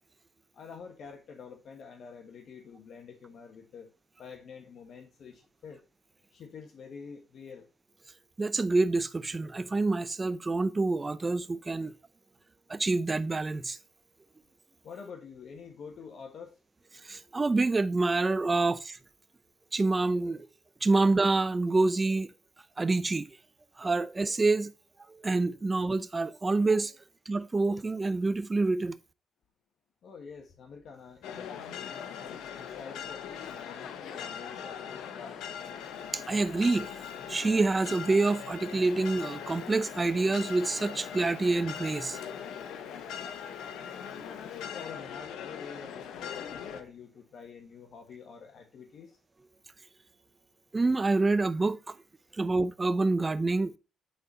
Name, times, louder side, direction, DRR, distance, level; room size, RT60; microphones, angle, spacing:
voice 1, 0.5-3.9 4.2-5.8 6.3-7.7 14.8-16.5 30.0-35.4 44.4-49.2, left 6 dB, 60° left, 1.3 m, -47 dB
voice 2, 8.4-11.9 12.7-13.8 17.0-19.0 19.7-20.5 20.8-22.3 22.8-23.3 23.8-24.7 25.1-26.9 27.3-29.0 36.1-36.9 37.3-42.2 50.7-51.9 52.4-53.8, right 3 dB, 25° right, 0.7 m, -27 dB
sound 1, 31.2-46.8, left 8 dB, 85° left, 1.0 m, -41 dB
9.3 x 4.1 x 4.1 m
cardioid pair, 90°, 0 cm